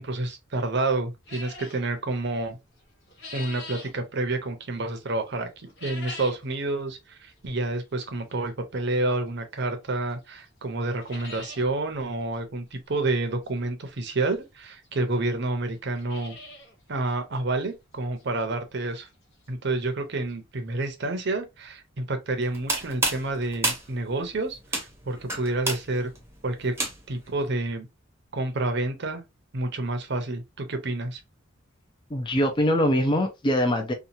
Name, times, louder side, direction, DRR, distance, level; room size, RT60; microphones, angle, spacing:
voice 1, 0.0-2.6 3.3-16.4 16.9-19.1 19.5-26.1 26.4-26.8 27.1-27.9 28.3-29.2 29.5-31.2, right 2 dB, 55° right, 0.7 m, -29 dB
sound 1, 1.3-1.8 2.8-3.9 5.6-6.5 6.9-7.0 7.8-7.9 9.6-9.7 10.1-10.2 10.5-10.6 10.8-11.6 12.0-12.1 12.3-12.4 14.0-14.1 14.8-14.9 15.1-15.2 15.7-16.7 17.1-17.2 17.7-17.8 18.2-18.3 20.0-20.1 20.3-20.4 20.8-20.9, left 2 dB, 65° left, 0.9 m, -42 dB
sound 2, 22.4-27.3, right 2 dB, 15° right, 0.8 m, -31 dB
voice 2, 32.1-33.9, equal, 25° left, 0.5 m, -23 dB
2.9 x 2.3 x 2.6 m
head